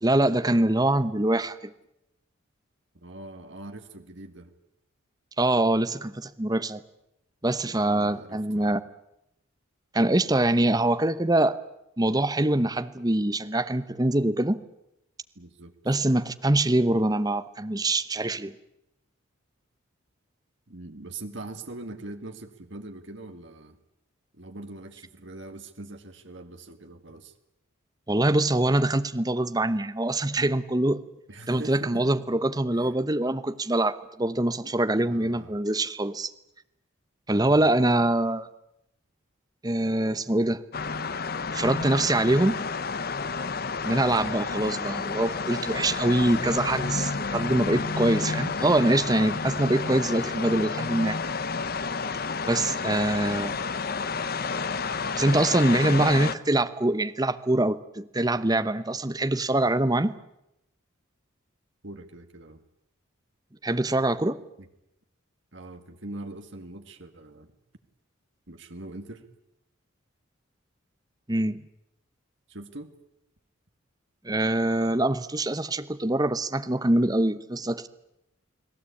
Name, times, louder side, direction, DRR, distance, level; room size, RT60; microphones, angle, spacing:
voice 1, 0.0-1.7 5.4-6.8 7.4-8.8 9.9-11.6 12.0-14.6 15.9-18.6 28.1-31.0 31.5-36.3 37.3-38.5 39.6-40.6 41.5-42.6 43.8-51.2 52.5-53.6 55.1-60.1 63.6-64.4 71.3-71.6 74.2-77.9, right 1 dB, 20° right, 11 dB, 0.9 m, -24 dB
voice 2, 2.9-4.5 7.8-8.8 15.4-15.7 20.7-23.8 24.3-27.3 31.3-32.1 32.7-33.0 35.1-35.5 37.4-37.7 42.1-42.5 49.4-49.7 61.8-62.6 64.6-64.7 65.5-67.5 68.5-69.3 72.5-72.9, right 2 dB, 60° right, 6 dB, 2.0 m, -42 dB
sound 1, 40.7-56.3, left 4 dB, 45° left, 0.9 m, -30 dB
30.0 x 19.0 x 8.5 m, 0.86 s
head